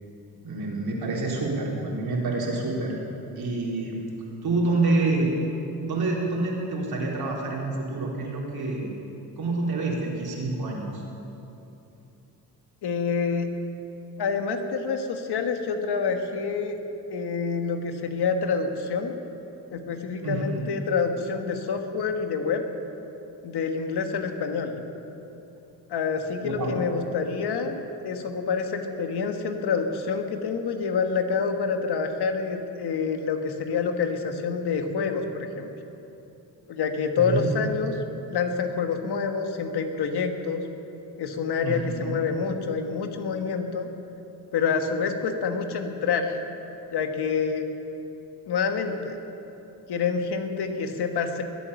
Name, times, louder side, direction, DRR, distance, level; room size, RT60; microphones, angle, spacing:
voice 1, 0.4-2.9 3.3-4.0 4.4-5.3 5.8-8.9 9.4-11.0 20.2-20.6 26.4-26.7 37.2-37.5 41.6-42.1, right 3 dB, 65° right, -3 dB, 4.3 m, -27 dB
voice 2, 12.8-13.5 14.2-16.8 17.1-19.1 19.7-22.6 23.4-24.8 25.9-35.7 36.7-38.0 38.3-40.7 41.2-43.9 44.5-46.4 46.9-47.6 48.5-49.2 49.9-51.4, left 5 dB, 70° left, 5 dB, 1.6 m, -27 dB
21.5 x 8.7 x 7.0 m, 3.0 s
supercardioid pair, 60°, 41 cm